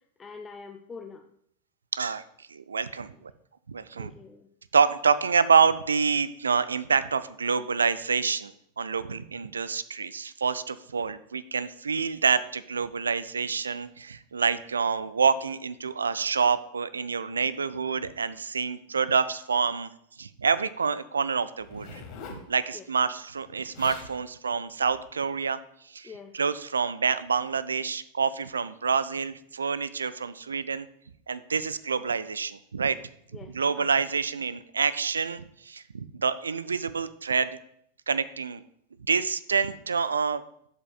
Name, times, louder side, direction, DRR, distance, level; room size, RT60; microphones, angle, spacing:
voice 1, 0.2-1.2 4.0-4.5 22.7-22.8 26.0-26.3 33.3-33.9, left 5 dB, 20° left, 5 dB, 0.5 m, -44 dB
voice 2, 1.9-3.3 3.7-4.1 4.7-19.9 20.2-22.0 22.3-30.9 31.3-33.0 33.4-37.6 38.1-38.6 39.1-40.4, right 5 dB, 75° right, 15 dB, 0.3 m, -27 dB
Zipper (clothing), 21.6-22.5 23.5-23.6 23.7-24.1 24.8-25.1, left 5 dB, 40° left, 1.2 m, -43 dB
11.0 x 7.4 x 2.3 m, 0.70 s
figure-of-eight pair, 90°, 0 cm